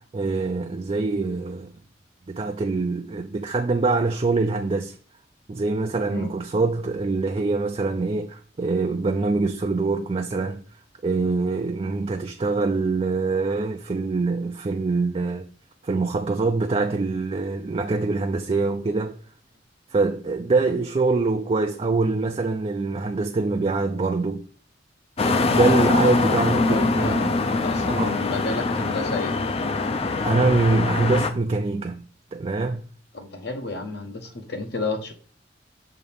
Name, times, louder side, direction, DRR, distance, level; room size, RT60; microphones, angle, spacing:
voice 1, 0.1-1.7 2.3-4.9 5.5-10.6 11.0-15.5 15.8-19.2 19.9-24.5 25.2-27.4 27.8-28.2 30.2-32.0 32.3-32.9, right 3 dB, 30° right, 0.4 m, -24 dB
sound 1, 25.2-31.3, left 3 dB, 35° left, 0.5 m, -23 dB
voice 2, 26.3-27.2 27.5-29.3 33.1-35.1, left 3 dB, 65° left, 1.1 m, -31 dB
6.5 x 2.9 x 5.2 m
head